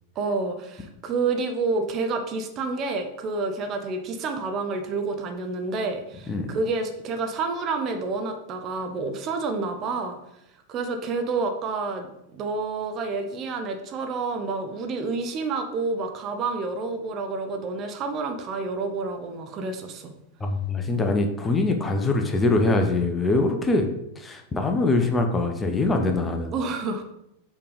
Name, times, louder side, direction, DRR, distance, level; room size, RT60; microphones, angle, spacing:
voice 1, 0.2-10.2 10.7-20.1 26.5-27.0, right 3 dB, 30° right, 5 dB, 0.8 m, -29 dB
voice 2, 20.4-23.9 24.2-26.5, left 2 dB, 15° left, 5 dB, 0.8 m, -23 dB
6.8 x 3.5 x 5.0 m, 0.81 s
figure-of-eight pair, 90°, 0 cm